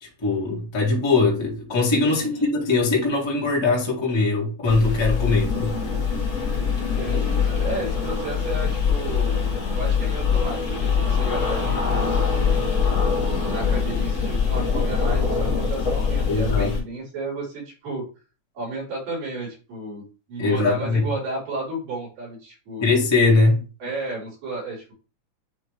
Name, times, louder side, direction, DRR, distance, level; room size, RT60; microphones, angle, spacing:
voice 1, 0.0-5.7 16.3-16.7 20.4-21.0 22.8-23.6, left 3 dB, 15° left, 1.1 m, -21 dB
voice 2, 2.1-2.5 6.8-9.4 9.7-13.1 13.5-18.0 18.6-20.0 20.3-22.9 23.8-24.9, right 2 dB, 90° right, 5.7 m, -33 dB
sound 1, 4.7-16.8, left 5 dB, 40° left, 1.1 m, -23 dB
9.4 x 3.3 x 3.2 m
omnidirectional pair, 3.9 m